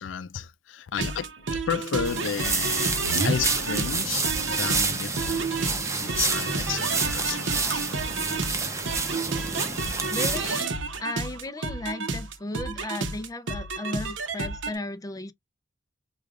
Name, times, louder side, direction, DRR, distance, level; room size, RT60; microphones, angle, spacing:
voice 1, 0.0-7.8, left 7 dB, 80° left, 0.4 m, -33 dB
sound 1, 1.0-14.7, right 3 dB, 80° right, 0.7 m, -31 dB
sound 2, 2.0-10.6, right 4 dB, 15° right, 0.7 m, -28 dB
voice 2, 10.1-15.3, left 2 dB, 20° left, 0.4 m, -35 dB
4.9 x 2.3 x 2.4 m
head